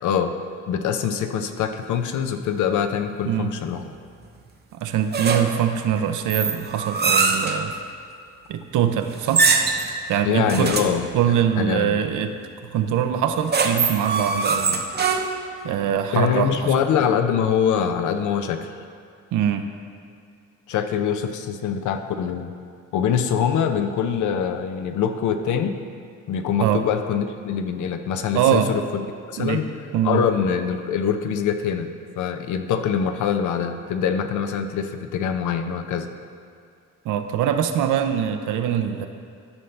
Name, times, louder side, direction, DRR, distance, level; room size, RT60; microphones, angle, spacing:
voice 1, 0.0-0.4 0.7-3.8 10.3-11.1 11.6-12.0 16.1-18.7 20.7-22.5 22.9-25.8 26.3-29.7 30.0-36.1, left 7 dB, 80° left, 7 dB, 0.7 m, -24 dB
voice 2, 4.7-7.7 8.5-9.5 10.1-10.8 11.1-12.3 12.7-14.9 15.6-16.7 19.3-19.7 26.6-26.9 28.3-28.7 29.4-29.6 29.9-30.2 37.0-39.1, right 9 dB, 85° right, 7 dB, 0.7 m, -23 dB
sound 1, 5.1-5.7 6.3-7.6 9.2-9.9 10.5-11.0 13.2-15.5, right 4 dB, 35° right, 0.7 m, -22 dB
13.0 x 5.6 x 3.3 m, 2.4 s
cardioid pair, 90°, 30 cm